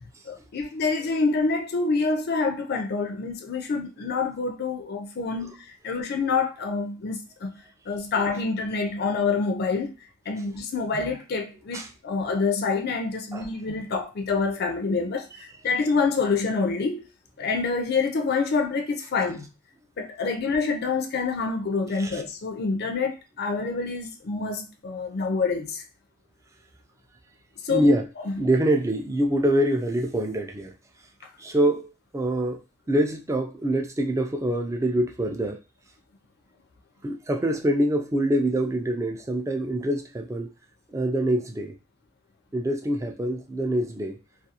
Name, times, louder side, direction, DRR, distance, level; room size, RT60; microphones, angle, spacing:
voice 1, 0.3-5.6 5.8-7.6 7.9-9.9 10.3-15.3 15.6-17.0 17.4-19.5 20.0-25.8 27.6-27.9 28.3-28.4, left 4 dB, 50° left, 0.4 m, -27 dB
voice 2, 27.7-28.1 28.4-30.7 31.4-32.6 32.9-35.6 37.0-40.5 40.9-41.8 42.5-44.2, right 1 dB, 15° right, 0.3 m, -25 dB
2.4 x 2.2 x 2.8 m
head